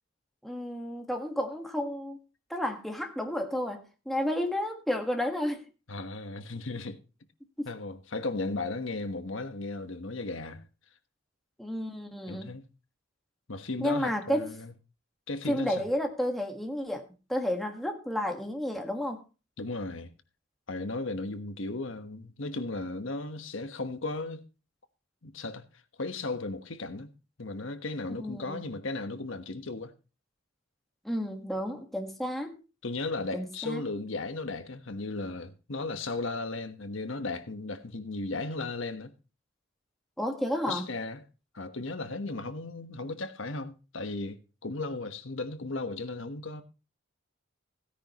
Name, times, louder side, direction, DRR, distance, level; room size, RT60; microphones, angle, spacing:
voice 1, 0.4-2.2 2.5-5.6 7.6-7.7 11.6-12.5 13.8-14.5 15.5-17.0 17.3-19.2 28.2-28.6 31.0-32.5 33.3-33.8 40.2-40.8, equal, ahead, 1.5 m, -31 dB
voice 2, 5.9-7.0 7.6-10.7 12.3-12.6 13.5-14.7 15.3-15.8 19.6-20.1 20.7-24.4 25.2-25.6 26.0-27.1 27.4-29.9 32.8-39.1 40.7-41.2 41.5-46.6, left 2 dB, 70° left, 1.3 m, -35 dB
16.0 x 10.0 x 3.0 m
head